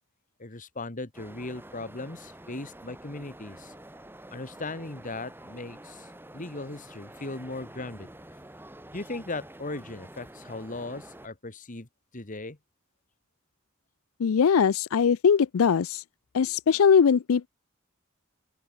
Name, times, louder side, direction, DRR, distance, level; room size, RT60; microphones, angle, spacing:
voice 1, 0.4-3.7 4.3-8.1 8.9-11.9 12.1-12.6, left 2 dB, 40° left, 1.8 m, -38 dB
Sagrada Familia Barcelona Ambience, 1.1-11.3, right 1 dB, 10° right, 3.7 m, -48 dB
voice 2, 14.2-16.0 16.3-17.5, left 6 dB, 90° left, 0.4 m, -21 dB
open air
head